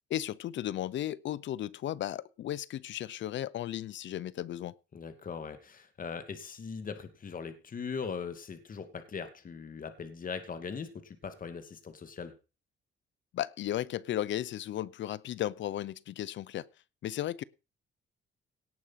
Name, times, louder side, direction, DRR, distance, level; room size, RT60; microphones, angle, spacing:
voice 1, 0.1-4.7 13.3-16.6 17.0-17.4, left 12 dB, 70° left, 0.8 m, -35 dB
voice 2, 4.9-12.3, left 5 dB, 45° left, 2.3 m, -40 dB
18.0 x 6.2 x 5.8 m
cardioid pair, 90°, 20 cm